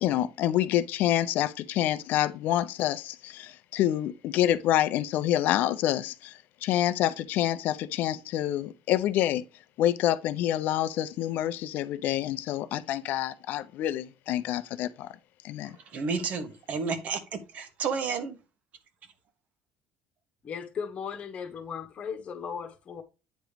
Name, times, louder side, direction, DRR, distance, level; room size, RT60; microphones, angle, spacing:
voice 1, 0.0-6.3 6.6-9.4 9.8-15.1 15.4-15.8, left 12 dB, 70° left, 0.6 m, -27 dB
voice 2, 15.9-18.4, right 5 dB, 55° right, 1.3 m, -31 dB
voice 3, 20.4-23.0, left 6 dB, 40° left, 1.2 m, -37 dB
9.1 x 3.0 x 5.0 m
cardioid pair, 125°, 3 cm